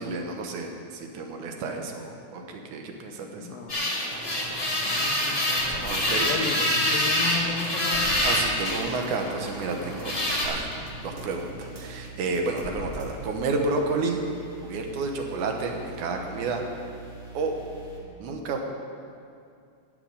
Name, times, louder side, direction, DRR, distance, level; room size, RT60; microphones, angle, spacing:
voice 1, 0.0-3.6 5.7-6.3 6.6-6.7 8.2-10.1 10.5-10.7 11.0-14.2 14.6-16.6 17.3-17.5 18.2-18.6, right 3 dB, 75° right, 3 dB, 2.5 m, -30 dB
voice 2, 3.4-3.9 4.8-6.0 6.2-8.2, left 6 dB, 70° left, 1 dB, 1.7 m, -35 dB
sound 1, 3.7-10.4, left 1 dB, 25° left, 1.7 m, -26 dB
sound 2, 4.1-13.5 13.9-14.0, equal, 55° right, 0.6 m, -42 dB
sound 3, 8.8-18.0, right 3 dB, 40° right, 3.6 m, -44 dB
12.5 x 6.2 x 9.5 m, 2.4 s
omnidirectional pair, 3.6 m